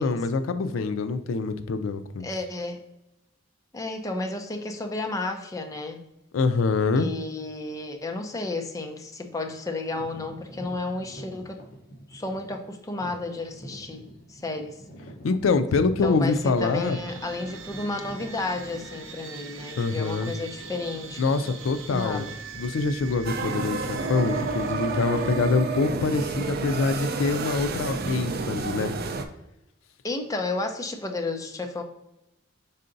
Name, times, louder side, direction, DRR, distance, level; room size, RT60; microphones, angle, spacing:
voice 1, 0.0-2.2 6.3-7.1 15.2-17.0 19.8-20.3 21.2-22.2 22.6-28.9, left 4 dB, 90° left, 10 dB, 0.4 m, -25 dB
voice 2, 2.2-2.8 3.7-6.0 7.0-11.6 12.1-14.0 14.3-14.8 16.0-21.4 21.9-22.4 30.0-31.8, left 2 dB, 15° left, 3 dB, 0.5 m, -32 dB
sound 1, 9.9-19.7 20.3-20.4 21.1-21.3 21.6-21.8 22.5-23.0 23.3-26.7, equal, 50° left, 0.9 m, -47 dB
sound 2, 16.6-25.5, right 3 dB, 90° right, 0.7 m, -41 dB
sound 3, 23.3-29.3, right 4 dB, 50° right, 0.4 m, -30 dB
5.5 x 3.7 x 2.6 m, 0.91 s
head